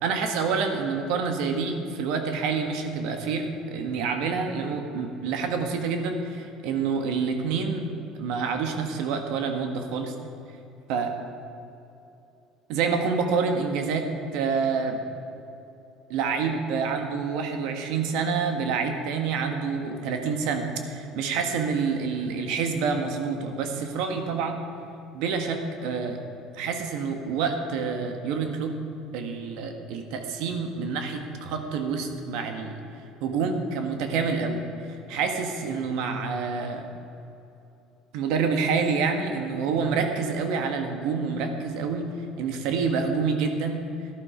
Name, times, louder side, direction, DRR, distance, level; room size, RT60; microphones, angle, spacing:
voice 1, 0.0-7.9 8.2-10.1 10.9-11.1 12.7-14.1 14.3-15.0 16.1-24.6 25.1-26.2 26.5-28.8 29.1-32.8 33.2-34.6 35.1-36.9 38.1-42.1 42.4-43.8, right 5 dB, 75° right, 5 dB, 1.5 m, -27 dB
12.5 x 11.5 x 5.1 m, 2.8 s
cardioid pair, 140°, 0 cm